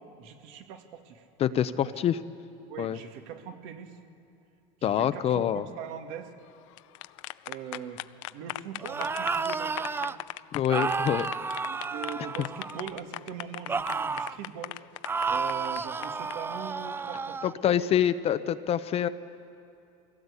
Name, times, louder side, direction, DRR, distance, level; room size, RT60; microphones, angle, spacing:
voice 1, 0.0-1.3 1.8-2.0 2.7-4.0 4.8-6.3 7.5-8.1 8.3-10.2 10.7-11.2 11.6-14.7 15.3-17.8, right 8 dB, 75° right, 6 dB, 1.9 m, -41 dB
voice 2, 1.4-2.2 2.8-3.0 4.8-5.7 10.5-11.3 17.4-19.1, left 10 dB, 40° left, 12 dB, 0.7 m, -26 dB
sound 1, 6.6-16.3, left 19 dB, 85° left, 0.5 m, -39 dB
sound 2, 8.8-10.2 10.7-13.0 13.7-14.4 15.0-17.5, right 4 dB, 15° right, 0.4 m, -31 dB
23.5 x 16.5 x 8.3 m, 2.6 s
supercardioid pair, 115°, 16 cm